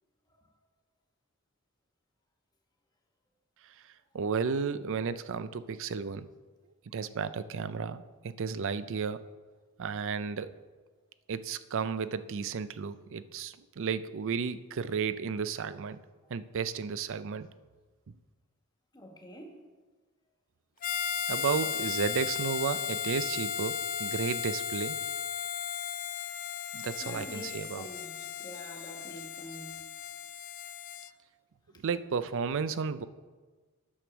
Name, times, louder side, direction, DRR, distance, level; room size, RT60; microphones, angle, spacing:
voice 1, 4.1-6.3 6.9-9.2 9.8-10.5 11.3-16.0 16.3-17.5 21.3-25.0 26.7-27.9 31.8-33.1, right 6 dB, 60° right, 14 dB, 0.5 m, -33 dB
voice 2, 18.9-19.6 27.0-28.1 28.4-29.8 31.7-31.8, equal, 20° left, 2 dB, 1.3 m, -46 dB
Harmonica, 20.8-31.1, left 8 dB, 40° left, 0.4 m, -35 dB
9.9 x 6.1 x 6.0 m, 1.4 s
head